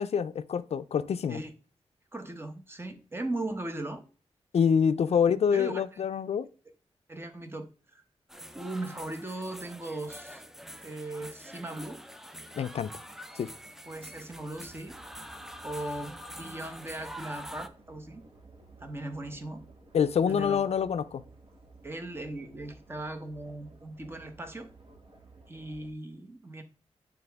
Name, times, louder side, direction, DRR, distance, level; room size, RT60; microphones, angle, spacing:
voice 1, 0.0-1.4 4.5-6.5 12.5-12.9 13.3-13.5 19.9-21.2, left 7 dB, 70° left, 0.4 m, -26 dB
voice 2, 2.1-4.0 5.1-5.2 5.5-6.0 7.1-8.0 8.5-10.4 10.8-12.0 13.8-15.0 15.6-18.3 18.8-19.6 20.3-20.7 21.8-24.7 25.5-26.6, right 2 dB, 20° right, 0.8 m, -38 dB
sound 1, 8.3-17.7, equal, 5° right, 0.4 m, -46 dB
sound 2, 13.9-25.9, right 3 dB, 55° right, 1.2 m, -55 dB
9.1 x 3.4 x 3.4 m
wide cardioid pair, 155°, 11 cm